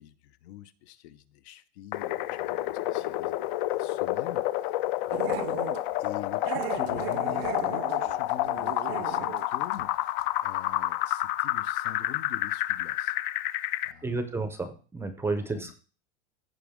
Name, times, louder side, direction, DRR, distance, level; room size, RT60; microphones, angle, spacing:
voice 1, 0.0-4.4 5.1-10.1 10.4-13.2 13.8-14.3 15.5-15.7, left 12 dB, 70° left, 0.8 m, -45 dB
sound 1, 1.9-13.9, left 15 dB, 45° left, 0.4 m, -29 dB
Growling, 5.1-5.8 6.4-9.5 9.7-9.9 10.2-10.3, right 15 dB, 60° right, 0.6 m, -36 dB
voice 2, 14.0-15.7, right 3 dB, 5° right, 0.5 m, -31 dB
15.0 x 5.1 x 3.5 m
supercardioid pair, 155°, 34 cm